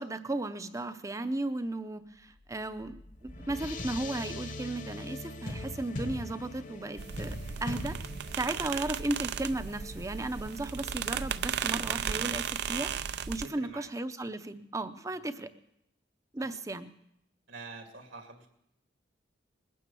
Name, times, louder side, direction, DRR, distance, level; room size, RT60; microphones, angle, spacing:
voice 1, 0.0-7.4 7.6-8.0 8.3-15.5 16.3-16.9, right 2 dB, 15° right, 11 dB, 0.6 m, -35 dB
sound 1, 2.4-13.1, left 1 dB, 45° left, 1.1 m, -43 dB
sound 2, 7.0-13.5, right 8 dB, 60° right, 0.5 m, -35 dB
voice 2, 13.4-13.9 16.4-16.5 17.5-18.5, right 3 dB, 75° right, 4 dB, 2.3 m, -46 dB
20.5 x 9.3 x 6.9 m, 0.80 s
head